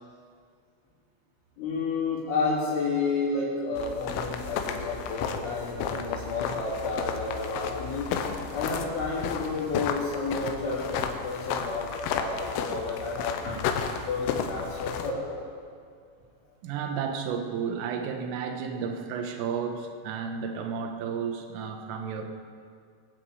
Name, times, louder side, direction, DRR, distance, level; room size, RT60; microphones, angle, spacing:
voice 1, 1.6-8.1 8.5-13.6 14.1-15.3, left 3 dB, 65° left, -11 dB, 5.6 m, -31 dB
sound 1, 3.8-15.1, left 7 dB, 90° left, 3.6 m, -33 dB
voice 2, 16.6-22.2, right 6 dB, 80° right, 5 dB, 3.8 m, -32 dB
22.0 x 8.3 x 7.9 m, 2.2 s
omnidirectional pair, 5.9 m